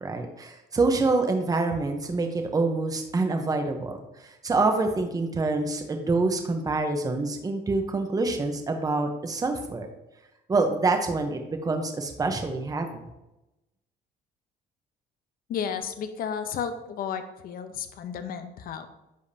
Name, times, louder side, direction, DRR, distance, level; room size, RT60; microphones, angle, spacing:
voice 1, 0.0-9.9 10.5-13.0, right 3 dB, 20° right, 5 dB, 0.9 m, -26 dB
voice 2, 15.5-18.9, left 7 dB, 60° left, 9 dB, 0.8 m, -33 dB
10.0 x 5.1 x 2.8 m, 0.93 s
cardioid pair, 110°, 17 cm